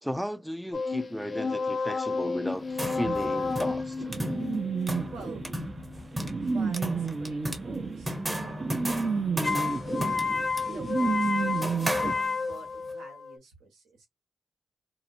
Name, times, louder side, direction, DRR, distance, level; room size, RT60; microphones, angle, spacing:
voice 1, 0.0-4.0, equal, ahead, 0.5 m, -34 dB
sound 1, 0.7-6.1 9.4-13.4, left 4 dB, 45° left, 0.5 m, -31 dB
sound 2, 2.5-12.7, right 1 dB, 20° right, 0.9 m, -36 dB
sound 3, 3.0-12.1, right 4 dB, 50° right, 0.7 m, -31 dB
voice 2, 5.1-5.4 6.4-10.0 10.6-14.1, right 3 dB, 85° right, 1.3 m, -49 dB
2.8 x 2.0 x 2.7 m
supercardioid pair, 40°, 0 cm